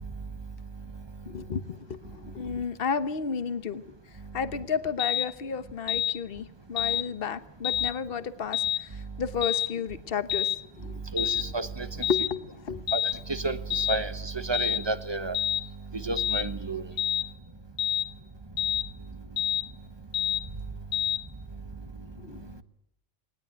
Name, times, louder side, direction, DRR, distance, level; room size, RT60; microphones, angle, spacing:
voice 1, 1.3-3.8 4.3-8.9 9.2-11.0 12.1-12.8 22.2-22.6, left 6 dB, 50° left, 12 dB, 1.3 m, -32 dB
sound 1, 5.0-5.3 5.9-6.2 6.8-7.0 7.6-7.9 8.5-8.8 9.4-9.7 10.3-10.6 11.2-11.5 12.0-12.3 12.9-13.2 13.7-14.0 14.5-14.8 15.3-15.6 16.2-16.5 17.0-17.3 17.8-18.1 18.6-18.9 19.4-19.6 20.1-20.4 20.9-21.2, left 9 dB, 65° left, 1.9 m, -27 dB
voice 2, 11.1-12.1 12.9-13.0 13.3-15.4 15.9-16.9, right 2 dB, 20° right, 12 dB, 1.0 m, -31 dB
20.5 x 19.5 x 9.4 m, 0.73 s
omnidirectional pair, 1.3 m